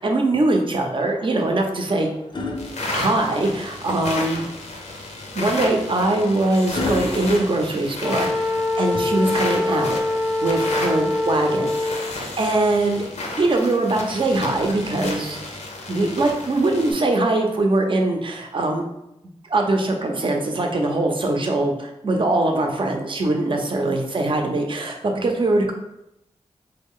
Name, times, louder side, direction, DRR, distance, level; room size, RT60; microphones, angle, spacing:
voice 1, 0.0-2.1 2.9-4.4 5.3-10.0 10.4-13.0 13.4-15.4 15.9-18.8 19.5-25.7, right 2 dB, 50° right, 2 dB, 0.6 m, -22 dB
sound 1, 1.2-3.7 5.2-8.4 10.2-11.4 13.3-15.2 16.4-16.6, left 2 dB, 45° left, 0.5 m, -35 dB
sound 2, 2.6-16.9, left 2 dB, 80° left, 0.7 m, -33 dB
Wind instrument woodwind instrument, 8.0-12.2, left 2 dB, 5° right, 0.5 m, -24 dB
3.1 x 2.3 x 3.7 m, 0.85 s
cardioid pair, 65°, 11 cm